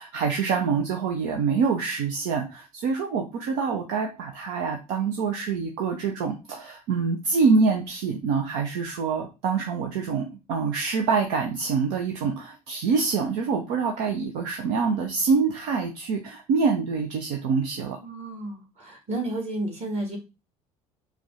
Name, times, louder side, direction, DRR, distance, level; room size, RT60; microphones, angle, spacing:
voice 1, 0.0-18.0, right 5 dB, 60° right, 3 dB, 0.7 m, -25 dB
voice 2, 18.0-20.2, right 2 dB, 35° right, 0 dB, 2.1 m, -32 dB
4.8 x 2.3 x 3.8 m, 0.28 s
figure-of-eight pair, 55°, 19 cm